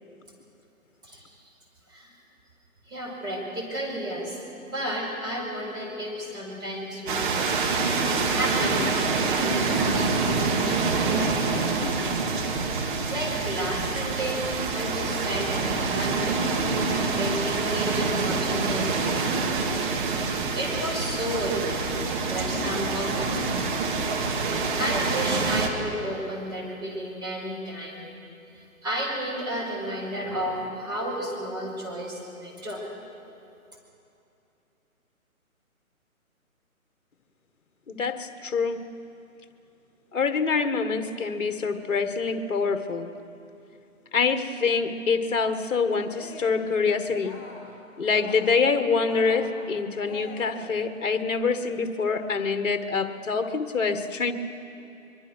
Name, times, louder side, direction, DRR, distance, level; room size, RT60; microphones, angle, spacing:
voice 1, 2.9-4.4 4.6-7.5 8.3-12.3 12.6-12.8 13.1-14.5 14.7-16.6 16.9-19.3 20.0-20.2 20.5-22.0 22.2-23.7 24.3-24.4 24.8-28.1 28.5-32.8, equal, 10° right, -5 dB, 5.0 m, -32 dB
sound 1, 7.1-25.7, right 4 dB, 35° right, 2.3 m, -26 dB
voice 2, 37.9-38.8 40.1-43.1 44.1-47.4 48.0-54.3, left 5 dB, 60° left, 9 dB, 1.7 m, -25 dB
Cheering, 46.0-46.7 47.1-47.8 48.0-48.7 49.0-50.8, left 3 dB, 30° left, 4.9 m, -43 dB
24.0 x 23.5 x 6.3 m, 2.8 s
figure-of-eight pair, 145°, 43 cm